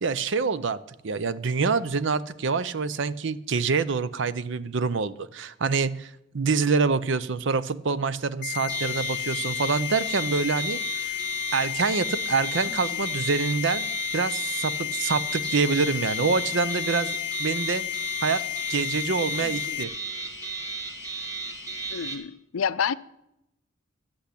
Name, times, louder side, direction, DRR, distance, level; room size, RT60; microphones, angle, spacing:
voice 1, 0.0-11.2 11.5-13.9 14.1-17.8 18.2-18.4 18.7-19.9, right 4 dB, 60° right, 0.6 m, -26 dB
sound 1, 8.4-19.8, left 13 dB, 40° left, 0.7 m, -32 dB
sound 2, 8.7-22.2, right 3 dB, 15° right, 1.8 m, -35 dB
voice 2, 21.9-22.9, left 7 dB, 85° left, 0.5 m, -28 dB
11.5 x 8.2 x 8.4 m
head